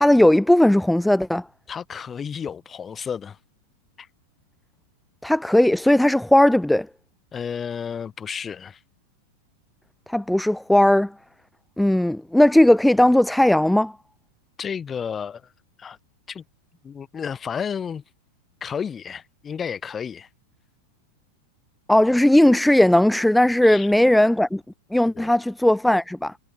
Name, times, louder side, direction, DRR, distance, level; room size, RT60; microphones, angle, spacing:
voice 1, 0.0-1.4 5.2-6.9 10.1-11.1 11.8-13.9 21.9-24.6 24.9-26.3, left 1 dB, 5° left, 0.3 m, -17 dB
voice 2, 1.7-3.4 4.0-4.1 7.3-8.8 14.6-15.4 15.8-16.0 16.3-16.4 16.8-18.0 18.6-20.3 23.6-23.9 25.1-25.3, left 7 dB, 20° left, 4.2 m, -32 dB
figure-of-eight pair, 90°, 0 cm